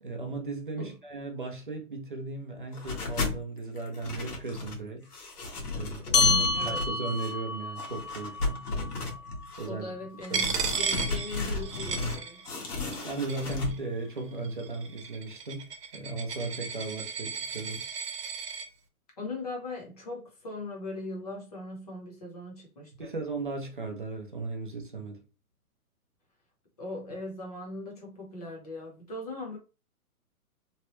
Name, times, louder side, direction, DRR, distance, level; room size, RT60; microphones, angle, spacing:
voice 1, 0.0-5.1 5.7-8.6 9.6-9.9 10.3-10.7 13.0-17.9 23.0-25.3, right 3 dB, 35° right, 0.5 m, -36 dB
sound 1, 2.7-3.4 3.8-4.8 5.1-7.3 7.8-9.7 10.2-12.2 12.4-13.7, left 3 dB, 75° left, 1.3 m, -34 dB
sound 2, 6.1-10.9, left 4 dB, 55° left, 0.6 m, -30 dB
voice 2, 6.2-6.8 9.6-12.4 19.2-23.1 26.8-29.6, left 2 dB, 25° left, 0.8 m, -39 dB
Coin (dropping), 10.3-12.7 12.9-13.7 14.4-18.7, right 6 dB, 90° right, 0.9 m, -35 dB
3.1 x 2.2 x 2.9 m
hypercardioid pair, 170°, 46 cm